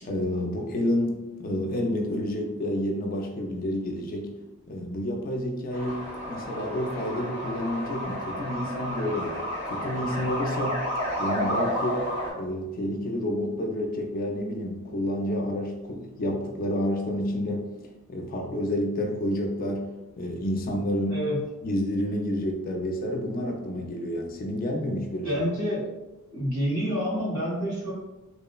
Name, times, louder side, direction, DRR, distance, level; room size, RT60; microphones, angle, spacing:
voice 1, 0.0-4.3 4.7-10.8 11.2-12.0 12.3-17.7 18.1-19.9 20.2-21.2 21.6-25.3, left 1 dB, 40° left, 1 dB, 0.4 m, -29 dB
sound 1, 5.7-12.3, equal, 25° right, 0.6 m, -31 dB
voice 2, 25.2-25.9 26.3-27.9, equal, 85° right, -7 dB, 1.4 m, -28 dB
3.0 x 2.0 x 2.2 m, 1.1 s
head